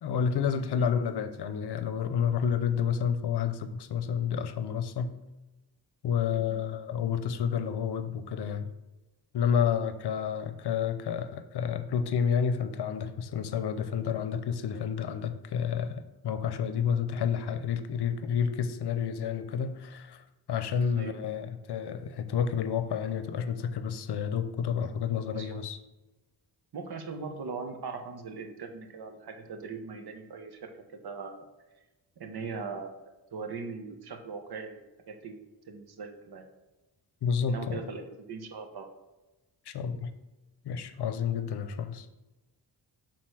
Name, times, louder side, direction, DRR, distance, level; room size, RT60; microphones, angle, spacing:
voice 1, 0.0-5.1 6.0-8.7 9.3-25.8 37.2-37.8 39.7-40.1 40.6-42.1, left 7 dB, 70° left, 0.7 m, -30 dB
voice 2, 0.6-0.9 6.3-6.6 20.9-21.1 25.3-25.6 26.7-31.4 32.2-32.9 33.3-34.8 35.1-35.4 35.7-36.5 37.5-38.9, right 4 dB, 65° right, 1.2 m, -40 dB
6.6 x 4.0 x 6.2 m
cardioid pair, 85°, 41 cm